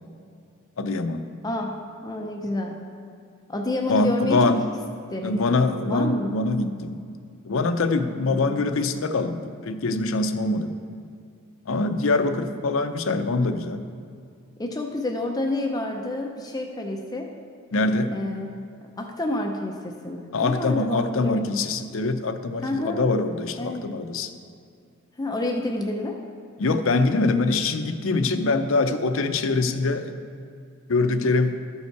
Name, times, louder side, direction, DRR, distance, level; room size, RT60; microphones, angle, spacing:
voice 1, 0.8-1.3 3.9-4.6 5.2-7.0 7.4-10.7 11.7-13.9 17.7-18.1 20.3-24.3 26.6-30.1 30.9-31.6, left 3 dB, 60° left, 8 dB, 0.6 m, -24 dB
voice 2, 1.4-2.8 3.5-4.5 5.1-5.5 5.9-6.3 8.3-8.6 12.4-12.6 14.6-17.3 18.1-18.6 19.0-21.5 22.6-23.1 23.6-23.9 25.2-26.2, left 2 dB, 15° left, 2 dB, 0.5 m, -29 dB
13.0 x 5.6 x 4.6 m, 2.3 s
head